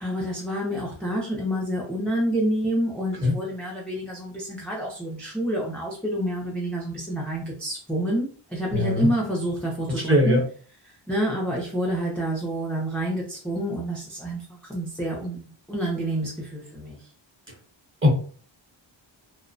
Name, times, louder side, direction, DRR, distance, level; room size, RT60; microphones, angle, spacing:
voice 1, 0.0-10.4 11.1-17.0, right 1 dB, 5° left, -4 dB, 0.4 m, -28 dB
voice 2, 8.7-9.1 10.1-10.4 18.0-18.1, left 1 dB, 25° right, -1 dB, 0.7 m, -19 dB
2.5 x 2.0 x 2.5 m, 0.44 s
wide cardioid pair, 160°, 47 cm